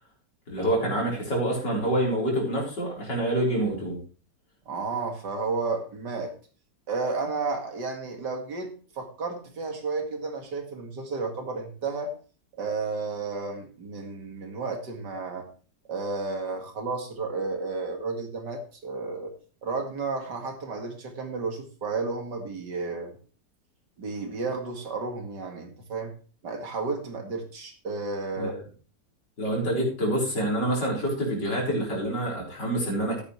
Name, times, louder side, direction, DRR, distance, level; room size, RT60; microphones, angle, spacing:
voice 1, 0.5-4.0 28.4-28.6 29.4-33.2, right 1 dB, 75° left, -3 dB, 4.7 m, -27 dB
voice 2, 4.7-6.3 6.9-12.1 12.6-15.5 15.9-19.3 19.6-23.2 24.0-26.1 26.4-28.5, right 4 dB, 70° right, 3 dB, 2.7 m, -32 dB
13.0 x 9.8 x 3.2 m, 0.39 s
omnidirectional pair, 1.9 m